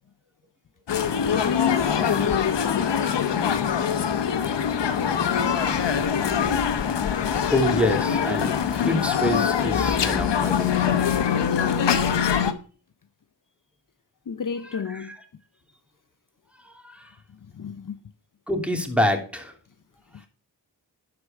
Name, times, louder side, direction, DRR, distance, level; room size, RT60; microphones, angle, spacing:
sound 1, 0.9-12.5, left 7 dB, 85° left, 1.0 m, -23 dB
voice 1, 1.3-3.0 14.3-15.1 17.3-18.0 20.1-20.3, left 7 dB, 50° left, 0.7 m, -29 dB
sound 2, 5.7-11.3, left 3 dB, 30° left, 1.4 m, -40 dB
voice 2, 7.5-10.9 14.9-15.2 16.6-17.1 18.5-19.5, left 1 dB, 5° right, 2.9 m, -26 dB
11.0 x 4.9 x 7.2 m
cardioid pair, 40°, 41 cm